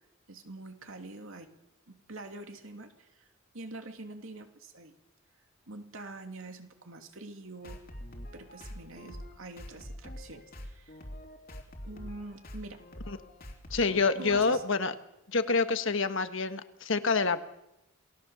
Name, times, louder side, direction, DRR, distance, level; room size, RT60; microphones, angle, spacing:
voice 1, 0.3-1.5 1.9-3.3 3.5-4.9 5.7-7.8 8.3-11.0 11.9-12.9 14.2-14.6, right 2 dB, 70° right, 5 dB, 2.7 m, -45 dB
sound 1, 7.6-14.6, equal, 40° left, 3.1 m, -45 dB
voice 2, 13.7-14.9 15.3-17.4, left 4 dB, 60° left, 9 dB, 1.4 m, -27 dB
28.0 x 18.5 x 7.1 m, 0.89 s
head